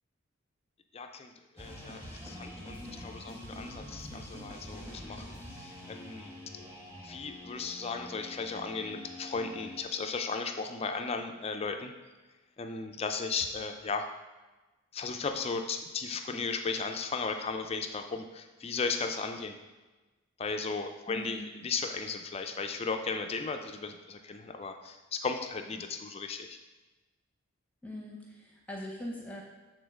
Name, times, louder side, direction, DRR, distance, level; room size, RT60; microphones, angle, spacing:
voice 1, 0.9-6.3 7.0-11.9 12.6-14.1 14.9-19.6 20.4-26.6, left 4 dB, 30° left, 6 dB, 0.4 m, -36 dB
sound 1, 1.6-9.8, left 1 dB, 10° right, 1.1 m, -45 dB
voice 2, 21.1-21.5 27.8-29.4, left 1 dB, 5° left, -1 dB, 0.8 m, -41 dB
7.0 x 3.9 x 6.3 m, 1.2 s
head